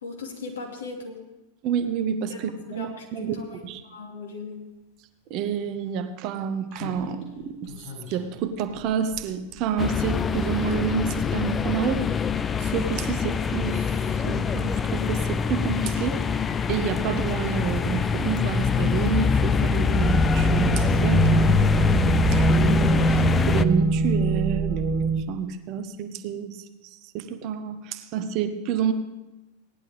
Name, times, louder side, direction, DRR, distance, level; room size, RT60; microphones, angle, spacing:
voice 1, 0.0-1.2 2.3-2.4 2.7-4.7, left 3 dB, 65° left, 0 dB, 2.5 m, -38 dB
voice 2, 1.6-3.8 5.3-7.7 8.1-12.1 12.6-13.9 14.2-16.2 16.7-26.7 27.1-28.9, right 7 dB, 40° right, 9 dB, 0.9 m, -29 dB
Slam, 5.3-5.4 6.7-10.2 10.5-10.7, left 4 dB, 45° left, 5.5 m, -44 dB
sound 1, 9.8-23.7, left 6 dB, 20° left, 0.4 m, -24 dB
sound 2, 20.0-25.2, right 4 dB, 15° right, 0.9 m, -23 dB
17.5 x 10.5 x 3.6 m, 1.0 s
figure-of-eight pair, 90°, 0 cm